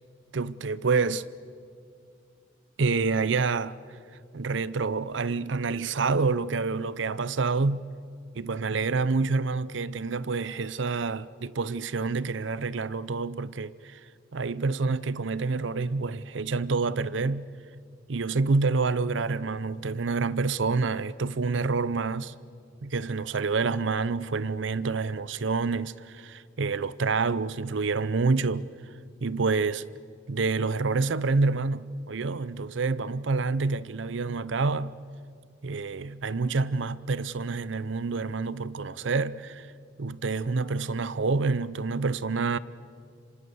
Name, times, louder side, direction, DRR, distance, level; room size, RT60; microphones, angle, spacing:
voice 1, 0.3-1.3 2.8-3.8 4.3-7.8 8.3-14.0 14.3-17.5 18.1-22.3 22.8-28.7 29.2-29.8 30.3-35.0 35.6-39.7 40.0-42.6, right 4 dB, 70° right, 0.6 m, -27 dB
27.0 x 25.0 x 7.0 m
head